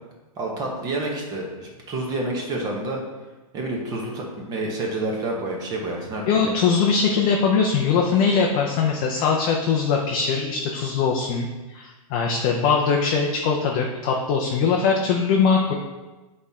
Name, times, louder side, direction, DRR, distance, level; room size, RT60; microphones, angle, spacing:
voice 1, 0.4-3.0 3.5-6.5, right 2 dB, 20° right, 0 dB, 1.0 m, -29 dB
voice 2, 6.3-15.7, left 5 dB, 25° left, 0 dB, 0.5 m, -21 dB
7.4 x 4.3 x 3.6 m, 1.2 s
hypercardioid pair, 160°, 19 cm